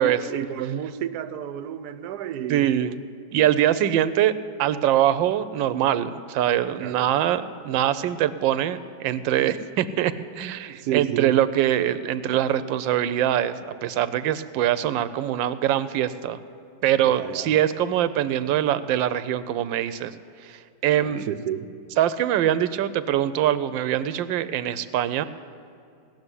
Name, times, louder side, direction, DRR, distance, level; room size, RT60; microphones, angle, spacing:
voice 1, 0.0-2.8 6.8-7.1 10.7-11.4 17.0-17.5 20.9-21.7, right 10 dB, 70° right, 1.1 m, -31 dB
voice 2, 2.5-3.0 3.3-16.4 16.8-20.1 20.4-21.3 22.0-25.3, right 11 dB, 85° right, 1.3 m, -23 dB
17.5 x 6.9 x 9.7 m
omnidirectional pair, 2.0 m